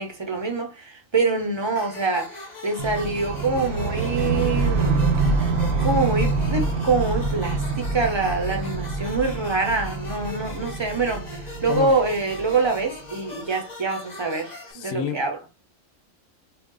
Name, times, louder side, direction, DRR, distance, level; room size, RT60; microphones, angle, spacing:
voice 1, 0.0-5.1 5.8-15.4, right 3 dB, 25° right, 0.7 m, -25 dB
sound 1, 1.7-14.7, left 3 dB, 35° left, 1.3 m, -40 dB
sound 2, 2.8-12.9, right 4 dB, 80° right, 1.0 m, -26 dB
voice 2, 14.7-15.2, left 8 dB, 80° left, 1.0 m, -28 dB
4.2 x 2.4 x 3.7 m
omnidirectional pair, 1.4 m